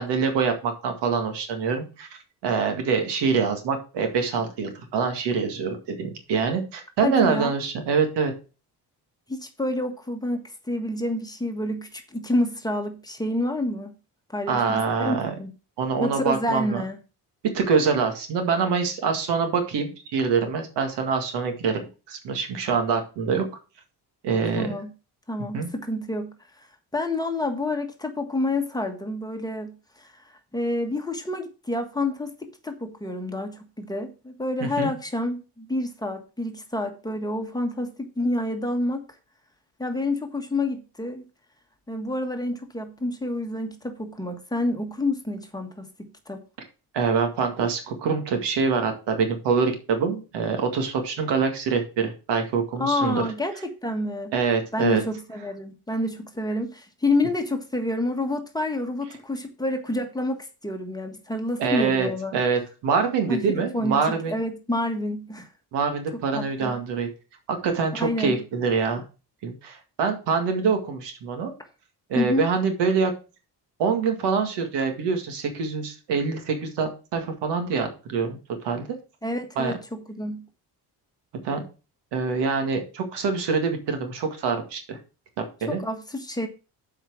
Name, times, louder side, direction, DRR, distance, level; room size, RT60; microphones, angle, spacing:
voice 1, 0.0-2.1 2.4-8.3 14.5-15.3 15.8-16.8 17.4-21.8 22.1-23.5 24.2-24.7 25.5-25.7 34.6-34.9 46.9-53.2 54.3-55.0 61.6-64.4 65.7-67.1 67.5-69.0 69.4-71.5 72.1-73.1 73.8-78.9 79.6-79.7 81.4-81.6 82.1-85.0 85.4-85.8, right 5 dB, 90° right, 2.1 m, -25 dB
voice 2, 7.0-7.5 9.3-13.9 14.3-15.5 16.0-17.0 24.5-24.9 25.3-26.7 26.9-39.0 39.8-41.3 41.9-46.4 52.8-54.3 54.7-62.3 63.3-65.5 66.3-66.8 68.0-68.4 72.1-72.5 79.2-80.4 85.7-86.5, left 1 dB, 10° left, 1.5 m, -28 dB
7.8 x 4.9 x 6.3 m
cardioid pair, 110°, 41 cm